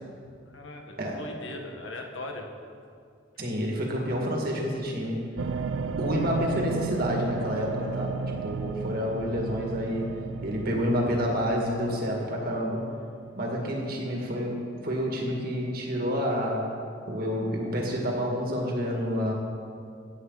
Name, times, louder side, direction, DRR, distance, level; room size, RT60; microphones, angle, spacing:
voice 1, 0.5-2.5 7.9-8.1, left 2 dB, 75° left, 3 dB, 1.4 m, -40 dB
voice 2, 3.4-5.3 6.0-10.2 10.4-12.9 13.4-16.8 17.1-19.3, equal, 50° right, -1 dB, 2.0 m, -29 dB
sound 1, 5.4-14.6 15.2-15.3, right 5 dB, 80° right, 0.5 m, -35 dB
16.5 x 8.5 x 4.0 m, 2.3 s
head